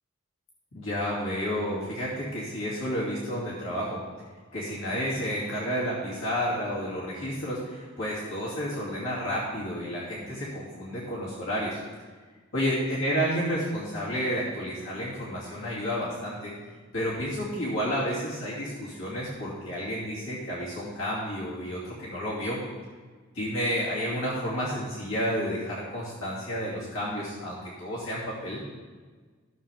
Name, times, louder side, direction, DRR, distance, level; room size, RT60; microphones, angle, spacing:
voice 1, 0.7-4.0 4.5-11.8 12.5-16.5 16.9-22.6 23.3-28.6, equal, 85° left, -7 dB, 2.6 m, -31 dB
14.0 x 7.2 x 3.5 m, 1.4 s
head